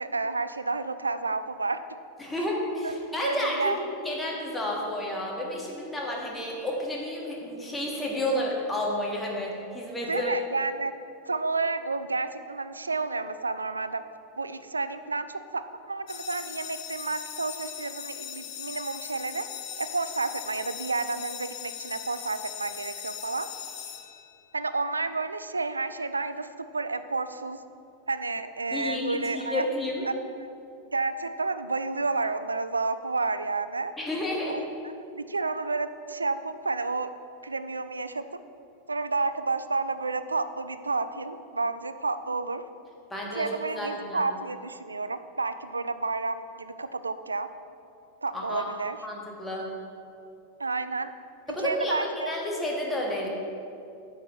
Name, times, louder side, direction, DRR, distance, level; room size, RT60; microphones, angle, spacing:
voice 1, 0.0-1.8 2.8-2.9 3.2-3.8 10.1-10.9 11.3-14.0 14.4-19.5 19.8-23.5 24.5-27.6 28.1-29.7 30.1-30.2 30.9-33.9 34.5-34.6 35.1-37.1 37.4-38.2 38.9-42.6 43.3-47.5 48.2-49.0 50.6-51.1 51.6-52.3, right 3 dB, 80° right, 12 dB, 0.3 m, -30 dB
voice 2, 2.2-10.3 28.7-30.1 34.0-34.6 43.1-44.3 48.3-48.7 49.0-49.7 51.5-53.3, left 1 dB, 10° left, -3 dB, 1.6 m, -31 dB
sound 1, 16.1-24.7, left 10 dB, 45° left, 0.6 m, -40 dB
10.5 x 7.3 x 3.1 m, 2.6 s
figure-of-eight pair, 90°, 0 cm